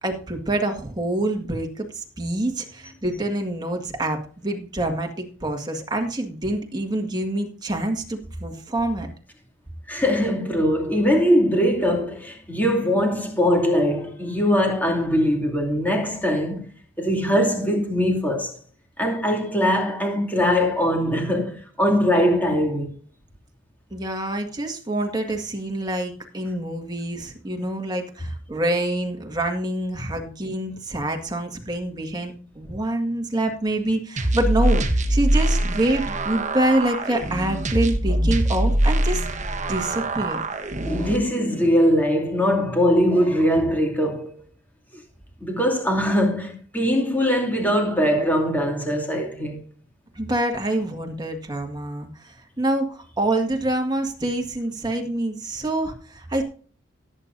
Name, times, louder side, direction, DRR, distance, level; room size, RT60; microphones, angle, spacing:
voice 1, 0.0-9.1 23.9-39.2 39.7-40.4 50.2-56.4, right 1 dB, 20° right, 1.8 m, -26 dB
voice 2, 9.9-16.7 17.0-18.6 19.0-22.9 40.8-44.3 45.4-49.6, equal, 10° left, 2.5 m, -21 dB
sound 1, 34.2-41.2, right 1 dB, 35° right, 1.3 m, -23 dB
17.0 x 9.0 x 2.7 m
head